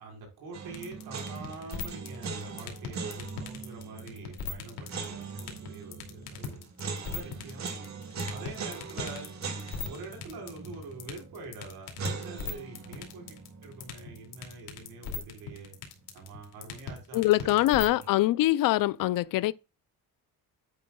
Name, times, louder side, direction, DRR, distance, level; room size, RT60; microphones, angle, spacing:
voice 1, 0.0-6.7 7.0-7.7 8.3-9.3 9.8-15.7 16.1-17.6, right 3 dB, 90° right, 4.8 m, -45 dB
sound 1, 0.5-15.5 15.8-15.9 17.6-18.1, right 4 dB, 50° right, 2.2 m, -41 dB
sound 2, 0.7-18.0, left 8 dB, 90° left, 2.6 m, -37 dB
voice 2, 17.1-19.5, left 16 dB, 65° left, 0.5 m, -24 dB
9.5 x 9.0 x 2.3 m
cardioid pair, 130°, 36 cm